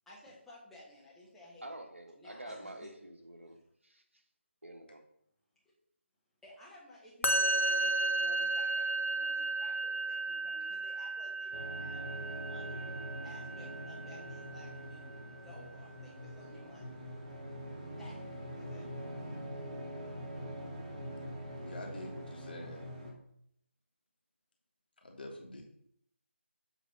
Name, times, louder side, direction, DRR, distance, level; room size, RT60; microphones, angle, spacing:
voice 1, 0.1-1.7 2.2-2.9 6.4-12.0 12.5-13.0 13.2-15.1 15.4-16.8 18.0-18.3 18.5-18.9, left 1 dB, ahead, -9 dB, 1.2 m, -55 dB
voice 2, 1.6-4.2 4.6-5.0, right 1 dB, 70° right, 3 dB, 1.5 m, -48 dB
Musical instrument, 7.2-14.5, right 2 dB, 80° left, 1.1 m, -34 dB
sound 1, 11.5-23.1, equal, 25° right, 1.3 m, -44 dB
voice 3, 21.6-22.8 25.0-25.6, left 2 dB, 45° left, 0 dB, 1.7 m, -46 dB
7.9 x 3.3 x 5.6 m, 0.71 s
figure-of-eight pair, 155°, 7 cm